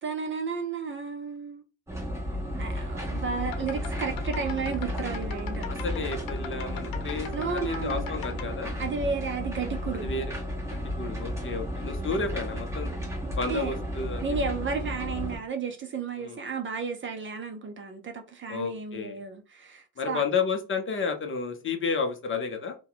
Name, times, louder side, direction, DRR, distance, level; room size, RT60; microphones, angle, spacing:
voice 1, 0.0-1.6 2.6-5.6 7.3-8.1 8.8-10.0 13.5-13.7 14.2-20.2, right 5 dB, 30° right, 0.5 m, -33 dB
sound 1, 1.9-15.4, equal, 5° right, 1.1 m, -33 dB
sound 2, 3.4-8.4, left 6 dB, 55° left, 0.9 m, -40 dB
voice 2, 5.7-8.7 9.9-10.3 11.0-12.9 13.4-14.2 16.2-16.4 18.5-19.2 20.0-22.8, left 4 dB, 30° left, 0.6 m, -31 dB
2.7 x 2.2 x 3.9 m
supercardioid pair, 90°, 43 cm